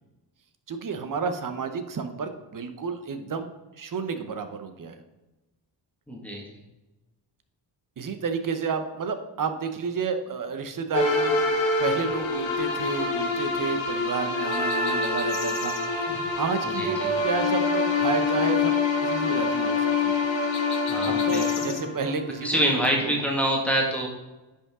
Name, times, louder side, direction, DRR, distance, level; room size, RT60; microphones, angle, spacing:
voice 1, 0.7-3.5 3.8-5.0 8.0-11.5 11.8-15.8 16.4-19.9 21.1-23.2, right 5 dB, 45° right, 8 dB, 0.9 m, -31 dB
voice 2, 6.1-6.4 16.1-16.2 16.7-17.1 20.9-21.7 22.4-24.1, right 1 dB, 5° left, -2 dB, 1.8 m, -26 dB
sound 1, 10.9-22.7, left 4 dB, 90° left, 1.6 m, -26 dB
sound 2, 14.5-15.9 20.5-21.8, left 8 dB, 60° left, 0.8 m, -39 dB
10.0 x 5.6 x 3.7 m, 1.1 s
cardioid pair, 115°, 44 cm